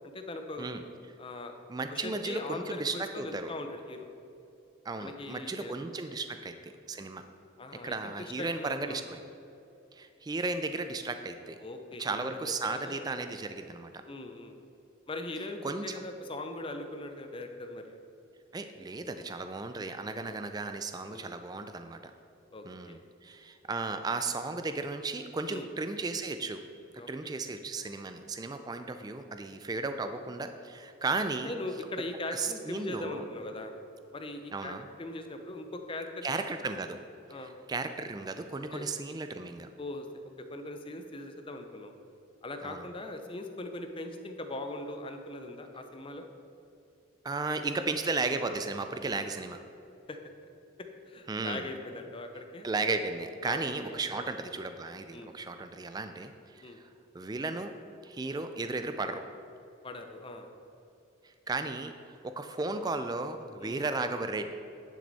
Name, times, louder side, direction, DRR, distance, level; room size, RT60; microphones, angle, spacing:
voice 1, 0.1-0.7 1.2-1.6 1.9-4.1 5.0-5.7 6.3-6.4 7.6-9.0 11.6-13.0 14.0-14.5 15.1-18.0 21.1-21.3 22.5-23.0 25.5-25.7 27.0-27.4 31.4-33.8 34.1-36.3 37.3-37.5 38.7-38.9 39.8-40.2 40.5-41.9 42.4-46.3 50.1-50.2 50.8-52.7 53.4-54.3 55.1-55.3 56.6-56.8 59.8-60.5 63.6-63.9, left 2 dB, 25° left, 5 dB, 0.6 m, -40 dB
voice 2, 1.7-3.5 4.8-7.2 7.8-9.2 9.9-11.6 12.0-14.0 15.6-16.0 18.5-22.0 22.6-26.6 26.9-31.5 32.3-33.2 34.5-34.8 36.2-37.0 37.3-39.7 42.6-42.8 47.2-49.6 51.3-51.7 52.6-56.8 57.1-57.7 58.0-59.3 61.2-64.5, right 3 dB, 20° right, 8 dB, 0.3 m, -35 dB
10.5 x 6.2 x 4.1 m, 2.8 s
head